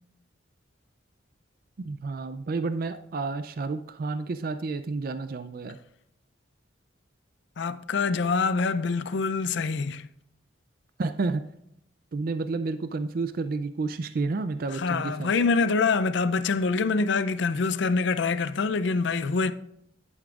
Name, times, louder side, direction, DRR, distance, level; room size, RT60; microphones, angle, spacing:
voice 1, 1.8-5.8 11.0-11.4 12.1-15.3, right 3 dB, 50° right, 0.4 m, -30 dB
voice 2, 7.6-10.1 14.7-19.5, left 4 dB, 65° left, 0.4 m, -25 dB
11.0 x 8.7 x 2.4 m
head